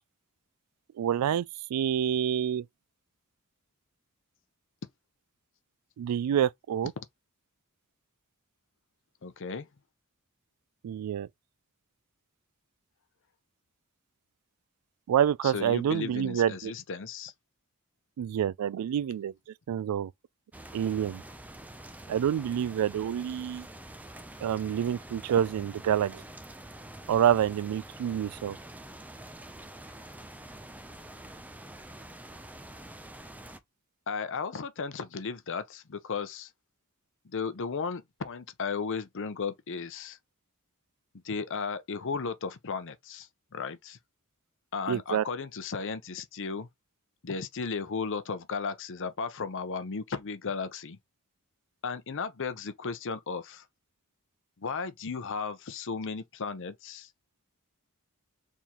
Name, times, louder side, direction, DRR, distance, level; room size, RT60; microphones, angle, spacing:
voice 1, 1.0-2.7 6.0-6.9 10.8-11.3 15.1-16.7 18.2-19.3 19.7-20.1 20.7-21.2 22.1-23.7 24.4-26.2 27.1-28.6 44.9-45.2, right 9 dB, 85° right, 0.3 m, -27 dB
voice 2, 9.2-9.7 15.4-17.3 34.1-36.5 37.2-40.2 41.2-44.0 44.7-46.7 47.2-51.0 51.8-53.6 54.6-57.1, left 5 dB, 60° left, 0.7 m, -35 dB
sound 1, 20.5-33.6, right 1 dB, 5° right, 0.5 m, -46 dB
4.5 x 3.6 x 2.9 m
head